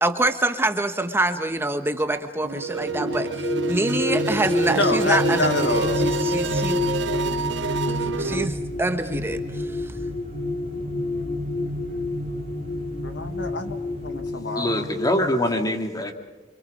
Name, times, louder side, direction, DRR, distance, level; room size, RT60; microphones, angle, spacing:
voice 1, 0.0-6.8 8.2-9.6, right 2 dB, 15° right, 8 dB, 1.1 m, -25 dB
sound 1, 2.4-8.5, right 5 dB, 85° right, 1.0 m, -28 dB
sound 2, 2.6-15.4, left 2 dB, 40° left, 2.6 m, -28 dB
voice 2, 4.7-6.0 8.4-8.5 13.0-13.8 14.0-14.9, left 2 dB, 80° left, 7 dB, 1.9 m, -27 dB
sound 3, 5.7-14.2, equal, 35° right, 2.7 m, -41 dB
voice 3, 14.6-16.1, left 1 dB, 20° left, 4 dB, 2.2 m, -24 dB
27.0 x 25.5 x 5.4 m, 1.2 s
head